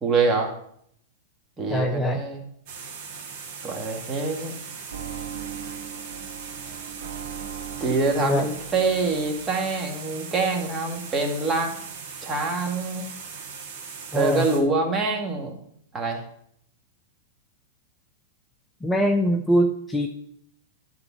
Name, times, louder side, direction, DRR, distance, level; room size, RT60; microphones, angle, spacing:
voice 1, 0.0-0.5 1.6-2.4 3.6-4.6 7.8-11.7 12.2-13.1 14.1-15.6 15.9-16.2, right 3 dB, 20° right, 1 dB, 1.9 m, -25 dB
voice 2, 1.7-2.2 8.2-8.5 14.1-14.5 18.8-20.1, equal, 10° left, 4 dB, 0.7 m, -23 dB
sound 1, 2.7-14.6, right 5 dB, 50° right, 2.0 m, -39 dB
sound 2, 4.9-9.8, right 9 dB, 65° right, 1.2 m, -39 dB
10.5 x 3.9 x 7.0 m, 0.70 s
figure-of-eight pair, 100°, 0 cm